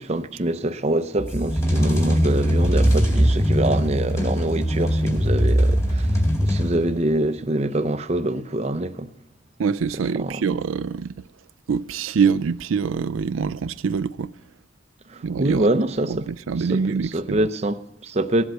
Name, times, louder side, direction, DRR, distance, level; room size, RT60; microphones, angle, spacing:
voice 1, 0.0-9.1 10.1-10.4 15.1-16.2 16.6-18.4, right 1 dB, 35° right, 0.6 m, -25 dB
sound 1, 1.2-7.2, equal, 15° left, 2.1 m, -20 dB
voice 2, 9.6-11.1 11.7-14.3 15.2-15.7 16.1-17.5, right 6 dB, 85° right, 0.4 m, -24 dB
17.5 x 7.8 x 8.2 m
head